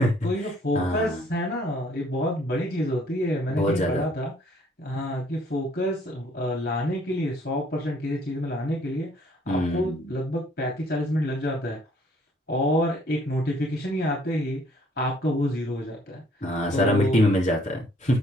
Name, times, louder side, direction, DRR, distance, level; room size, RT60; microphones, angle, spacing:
voice 1, 0.2-11.8 12.5-14.6 15.0-16.2 16.7-17.2, equal, 60° left, -1 dB, 3.1 m, -28 dB
voice 2, 0.7-1.2 3.6-4.1 9.5-10.0 16.4-18.2, left 1 dB, 40° left, -1 dB, 4.0 m, -23 dB
12.0 x 8.0 x 2.2 m, 0.24 s
head